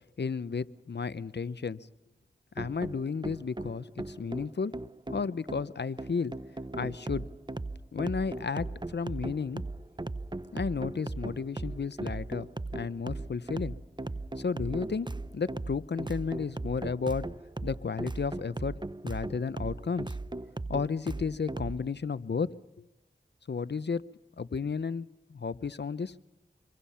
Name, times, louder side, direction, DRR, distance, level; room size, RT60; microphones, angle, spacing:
voice 1, 0.2-1.8 2.6-4.7 5.1-6.3 6.7-7.3 7.9-9.6 10.5-13.8 14.4-15.1 15.3-17.2 17.6-18.8 19.0-20.1 20.7-22.5 23.5-24.0 24.4-26.1, left 5 dB, 65° left, 16 dB, 0.8 m, -33 dB
sound 1, 2.6-21.8, right 2 dB, 25° right, 0.8 m, -38 dB
26.5 x 23.5 x 5.7 m, 0.93 s
cardioid pair, 40°, 19 cm